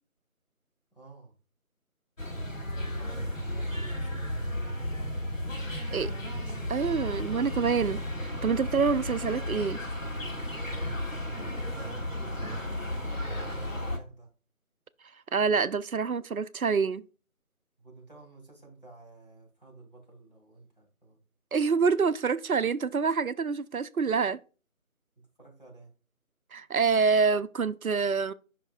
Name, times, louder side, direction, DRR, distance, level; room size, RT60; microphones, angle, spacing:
voice 1, 0.9-1.3 2.7-4.5 11.1-14.3 17.8-21.2 25.4-25.9, right 3 dB, 40° left, 2.5 m, -52 dB
sound 1, 2.2-14.0, left 1 dB, 65° left, 1.5 m, -34 dB
voice 2, 6.7-9.8 15.3-17.0 21.5-24.4 26.5-28.3, right 5 dB, 75° right, 0.5 m, -26 dB
8.4 x 5.8 x 2.2 m
figure-of-eight pair, 180°, 42 cm